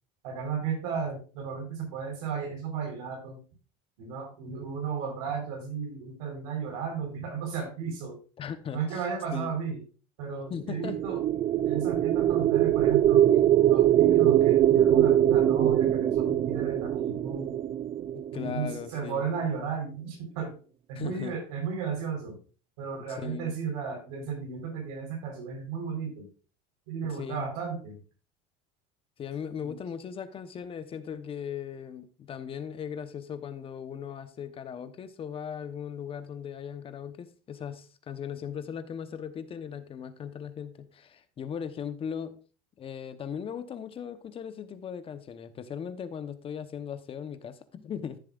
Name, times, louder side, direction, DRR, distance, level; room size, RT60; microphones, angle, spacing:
voice 1, 0.2-3.4 4.0-8.2 8.7-9.8 10.2-11.2 11.7-13.4 13.7-17.5 18.3-20.5 20.9-22.3 22.8-26.3 26.9-28.0 29.6-29.8, right 6 dB, 90° right, 4.1 m, -34 dB
voice 2, 8.4-9.0 9.3-9.6 10.5-11.0 18.1-19.3 20.9-21.3 23.1-23.5 27.0-27.5 29.2-42.4 42.8-48.2, left 8 dB, 30° left, 0.9 m, -38 dB
sound 1, 10.7-18.8, right 11 dB, 30° right, 0.4 m, -23 dB
14.0 x 7.3 x 2.4 m
supercardioid pair, 125°, 18 cm